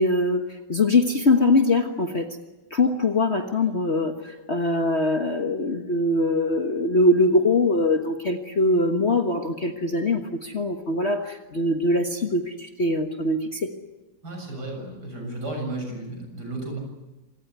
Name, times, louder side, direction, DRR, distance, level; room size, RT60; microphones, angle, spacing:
voice 1, 0.0-2.3 2.7-13.7, left 2 dB, 35° left, 5 dB, 1.6 m, -22 dB
voice 2, 14.2-16.8, right 2 dB, 55° right, 2 dB, 7.8 m, -33 dB
26.5 x 19.0 x 8.2 m, 1.1 s
omnidirectional pair, 2.1 m